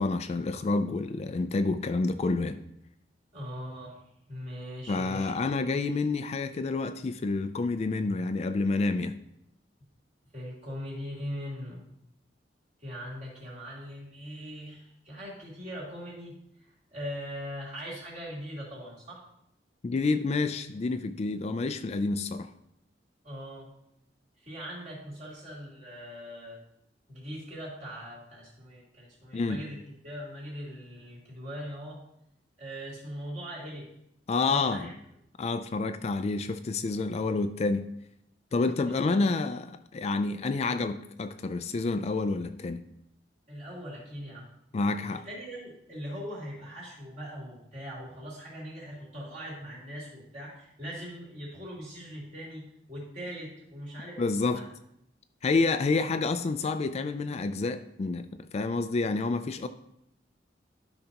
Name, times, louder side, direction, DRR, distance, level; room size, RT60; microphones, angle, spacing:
voice 1, 0.0-2.6 4.9-9.2 19.8-22.5 29.3-29.6 34.3-34.9 35.4-37.9 38.5-42.9 44.7-45.2 54.2-54.6 55.4-59.7, left 3 dB, 35° left, 10 dB, 0.4 m, -29 dB
voice 2, 3.3-4.0 4.3-5.3 10.3-11.8 12.8-19.2 23.2-23.7 24.4-26.6 27.1-29.8 30.0-32.0 32.6-33.9 34.5-34.9 38.8-39.2 43.5-44.5 45.1-54.2 54.5-54.7, equal, 45° right, -5 dB, 3.4 m, -41 dB
12.5 x 5.4 x 2.9 m, 0.77 s
head